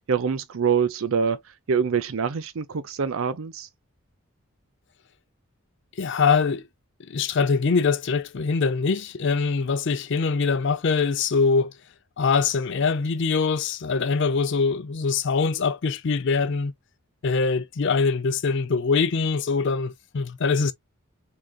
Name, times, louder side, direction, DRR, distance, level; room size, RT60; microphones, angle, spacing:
voice 1, 0.1-1.4 1.7-3.7, right 6 dB, 65° right, 0.5 m, -25 dB
voice 2, 6.0-6.6 7.1-11.7 12.2-16.7 17.2-20.7, left 4 dB, 55° left, 0.5 m, -23 dB
3.9 x 3.6 x 2.2 m
head